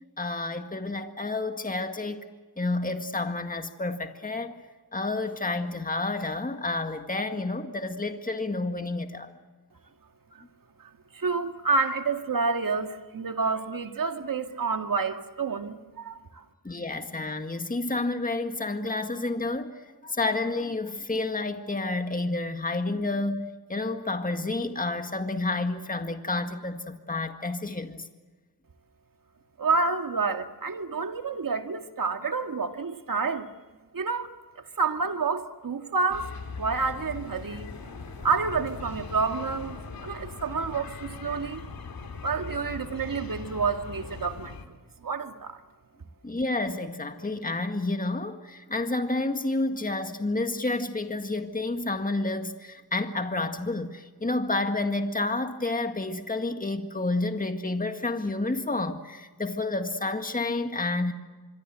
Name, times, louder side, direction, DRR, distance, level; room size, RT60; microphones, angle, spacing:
voice 1, 0.2-2.2 2.6-4.6 4.9-9.3 16.6-28.1 46.2-61.1, left 2 dB, 25° left, 1.9 m, -30 dB
voice 2, 11.1-16.4 29.6-33.5 33.9-34.3 34.8-36.3 36.6-37.7 38.2-39.8 40.0-41.7 42.2-44.6 45.0-45.6, right 4 dB, 65° right, 2.0 m, -29 dB
sound 1, 36.1-44.7, left 4 dB, 75° left, 2.8 m, -40 dB
26.0 x 23.5 x 7.7 m
cardioid pair, 65°, 36 cm